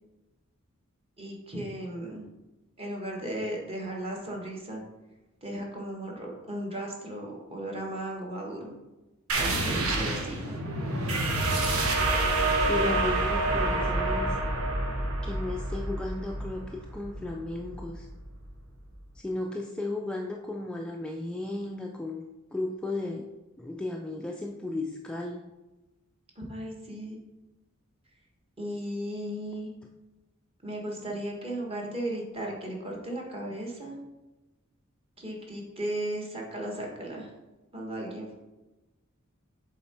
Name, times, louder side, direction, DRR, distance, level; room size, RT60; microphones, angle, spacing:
voice 1, 1.2-2.3 2.8-4.8 5.4-8.7 9.3-10.5 26.3-27.2 28.6-29.7 30.6-34.0 35.2-37.3 37.7-38.3, right 1 dB, 25° right, -1 dB, 1.4 m, -36 dB
sound 1, 9.3-18.5, right 2 dB, 75° right, 1.1 m, -28 dB
voice 2, 11.5-12.0 12.4-14.4 15.2-18.1 19.2-22.2 22.5-23.3 23.6-25.4, left 2 dB, 5° left, 0 dB, 0.3 m, -35 dB
7.3 x 3.8 x 4.4 m, 1.1 s
head